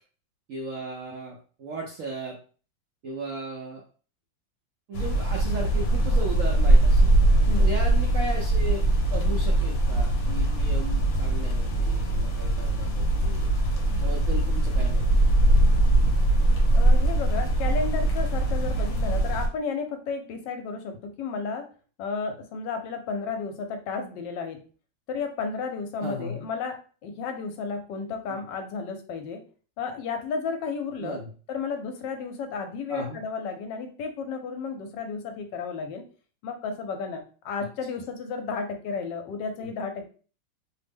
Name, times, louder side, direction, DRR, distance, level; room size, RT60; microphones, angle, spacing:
voice 1, 0.5-2.4 3.0-3.8 4.9-7.1 7.6-8.8 9.1-13.5 14.0-15.0 26.0-26.5 28.3-28.4 31.0-31.3 32.9-33.2 39.6-39.7, right 2 dB, 80° right, -1 dB, 0.7 m, -36 dB
sound 1, 4.9-19.5, right 1 dB, 60° left, 1.0 m, -22 dB
voice 2, 16.7-21.7 22.0-24.6 25.1-26.8 27.0-29.4 29.8-31.2 31.5-36.0 36.4-40.1, left 5 dB, 75° left, 6 dB, 1.2 m, -33 dB
3.1 x 2.1 x 3.4 m, 0.39 s
omnidirectional pair, 2.0 m